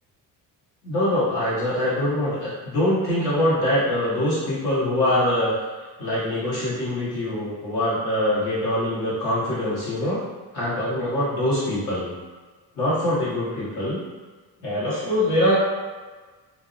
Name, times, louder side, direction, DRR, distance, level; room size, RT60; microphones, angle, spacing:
voice 1, 0.8-5.5 6.0-10.2 10.5-12.1 12.7-14.0 14.6-15.5, left 1 dB, 80° left, -9 dB, 1.4 m, -23 dB
2.7 x 2.0 x 2.5 m, 1.4 s
supercardioid pair, 75°, 39 cm